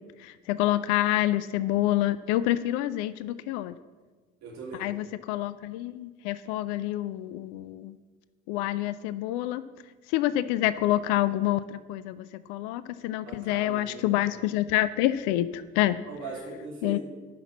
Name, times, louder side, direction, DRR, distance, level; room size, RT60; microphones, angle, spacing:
voice 1, 0.2-3.8 4.8-8.0 8.5-9.6 10.1-16.0 16.8-17.0, left 14 dB, 65° left, 15 dB, 0.5 m, -27 dB
voice 2, 4.4-4.9 13.2-14.1 16.1-17.0, right 3 dB, 55° right, -3 dB, 3.7 m, -40 dB
10.5 x 6.0 x 7.3 m, 1.4 s
figure-of-eight pair, 50°, 35 cm